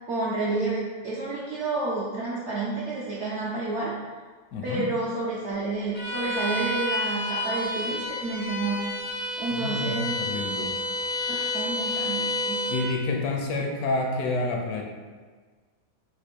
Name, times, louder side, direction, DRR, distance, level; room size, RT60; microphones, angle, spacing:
voice 1, 0.1-3.9 4.6-8.9 9.4-10.1 11.3-12.7, right 3 dB, 65° right, -6 dB, 0.7 m, -30 dB
voice 2, 4.5-4.9 9.5-10.7 12.7-14.8, left 2 dB, 70° left, 1 dB, 1.0 m, -29 dB
Bowed string instrument, 5.9-12.9, left 1 dB, 90° left, 1.9 m, -30 dB
4.3 x 2.5 x 4.3 m, 1.5 s
omnidirectional pair, 1.8 m